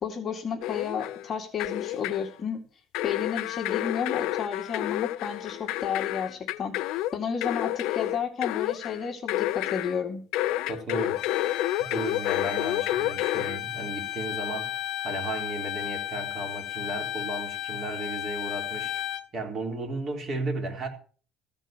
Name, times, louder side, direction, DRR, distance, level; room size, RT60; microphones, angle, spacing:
voice 1, 0.0-2.6 3.0-6.8 7.1-10.2, left 7 dB, 30° left, 2.0 m, -32 dB
sound 1, 0.6-1.3 1.6-2.3 2.9-10.0 10.3-13.6, left 15 dB, 90° left, 0.5 m, -30 dB
voice 2, 10.7-11.2 11.8-18.9 19.3-20.9, right 2 dB, 35° right, 3.9 m, -34 dB
Bowed string instrument, 11.1-19.3, left 13 dB, 70° left, 1.3 m, -34 dB
15.0 x 5.4 x 8.9 m
cardioid pair, 155°, 0 cm